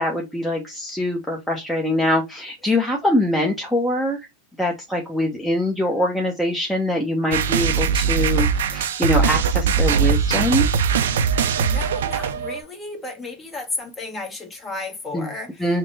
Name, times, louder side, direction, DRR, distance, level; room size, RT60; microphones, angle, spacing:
voice 1, 0.0-4.2 4.6-10.6 15.1-15.3 15.6-15.8, left 1 dB, 5° left, 0.7 m, -23 dB
sound 1, 7.3-12.6, right 6 dB, 85° right, 0.4 m, -20 dB
voice 2, 11.6-15.8, left 3 dB, 20° left, 1.1 m, -33 dB
3.6 x 2.0 x 4.0 m
supercardioid pair, 125°, 0 cm